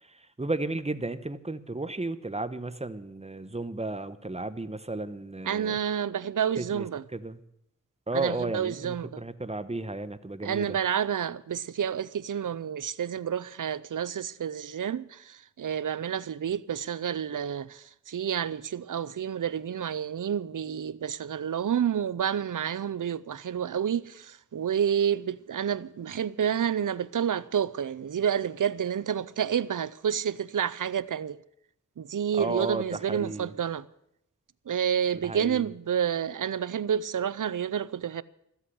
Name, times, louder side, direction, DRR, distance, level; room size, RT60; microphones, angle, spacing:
voice 1, 0.0-5.8 6.6-6.9 7.1-7.4 8.1-10.8 32.3-33.5 35.2-35.7, right 2 dB, 20° right, 1.0 m, -33 dB
voice 2, 5.4-7.0 8.1-9.2 10.4-31.4 32.0-33.8 34.7-38.2, right 8 dB, 80° right, 0.6 m, -29 dB
13.5 x 8.1 x 9.9 m
wide cardioid pair, 50°, 31 cm